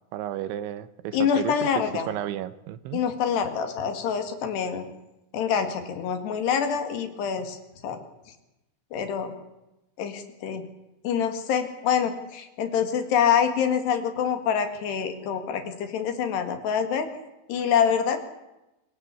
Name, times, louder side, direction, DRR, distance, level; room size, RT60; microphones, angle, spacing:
voice 1, 0.1-1.7 1.9-3.0, right 12 dB, 80° right, 14 dB, 3.3 m, -33 dB
voice 2, 1.1-2.1 2.9-4.8 5.3-7.6 7.8-8.0 8.9-9.3 10.0-10.6 11.0-17.1 17.5-18.2, left 7 dB, 65° left, 8 dB, 4.0 m, -26 dB
26.0 x 18.0 x 8.4 m, 0.95 s
omnidirectional pair, 5.5 m